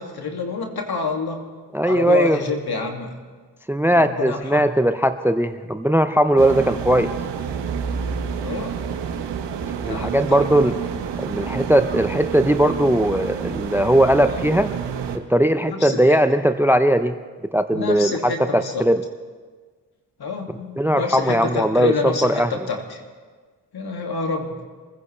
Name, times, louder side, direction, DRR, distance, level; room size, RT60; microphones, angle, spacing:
voice 1, 0.0-1.4 1.9-3.1 3.9-4.7 6.5-6.8 8.4-8.7 9.8-10.5 15.6-16.2 17.7-18.8 20.2-23.0 23.7-24.5, left 4 dB, 55° left, 3 dB, 2.4 m, -28 dB
voice 2, 1.7-2.4 3.7-7.1 9.8-10.8 11.2-14.7 15.3-17.2 17.5-19.0 20.8-22.5, right 1 dB, 5° right, 11 dB, 0.7 m, -19 dB
sound 1, 6.4-15.2, right 7 dB, 70° right, 1.4 m, -29 dB
25.5 x 15.5 x 3.3 m, 1.5 s
hypercardioid pair, 40°, 44 cm